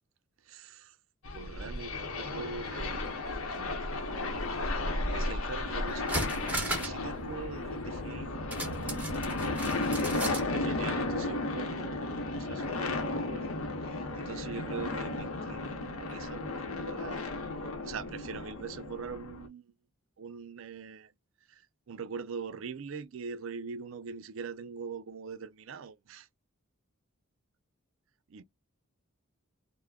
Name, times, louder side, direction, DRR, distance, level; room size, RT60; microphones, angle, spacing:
voice 1, 0.4-1.0 1.3-4.5 4.9-9.9 10.3-13.6 13.8-17.3 17.8-19.7 20.2-21.1 21.5-21.6 21.9-26.3 28.3-28.4, right 5 dB, 65° right, 0.4 m, -43 dB
sound 1, 1.2-19.5, left 2 dB, 80° left, 0.8 m, -34 dB
sound 2, 5.5-5.6 5.9-7.0 7.3-7.4 8.5-10.5 10.8-10.9, right 1 dB, 5° right, 0.8 m, -36 dB
3.4 x 2.1 x 2.3 m
head